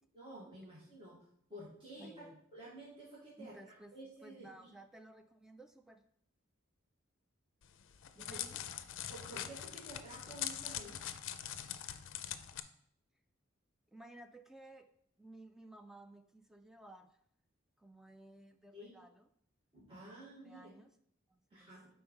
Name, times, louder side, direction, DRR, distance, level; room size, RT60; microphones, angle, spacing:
voice 1, 0.1-1.2 1.5-2.1 2.5-4.5 8.2-8.4 9.1-11.0 18.7-18.9 19.7-20.7 21.5-21.9, right 1 dB, 25° right, -10 dB, 2.0 m, -51 dB
voice 2, 2.0-2.4 3.4-3.9 4.2-6.1 8.1-8.6 13.9-14.9 15.2-17.2 17.8-19.3 20.4-20.9 21.3-21.7, right 1 dB, ahead, 7 dB, 0.3 m, -56 dB
Crackle, 7.6-12.6, left 10 dB, 65° left, 0.4 m, -43 dB
4.5 x 4.3 x 5.4 m, 0.67 s
head